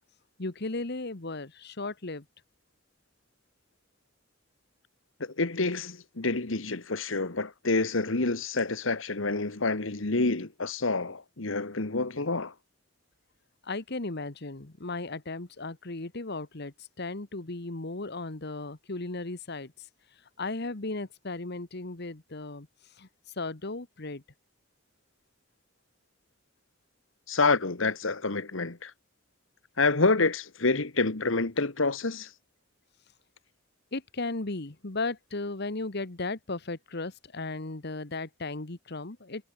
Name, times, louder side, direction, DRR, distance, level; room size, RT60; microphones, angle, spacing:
voice 1, 0.4-2.2 13.6-19.9 20.4-22.7 23.0-23.1 23.4-24.2 33.9-39.5, left 3 dB, 55° left, 1.5 m, -36 dB
voice 2, 5.2-12.5 27.3-28.9 29.8-32.3, left 3 dB, 70° left, 1.6 m, -28 dB
head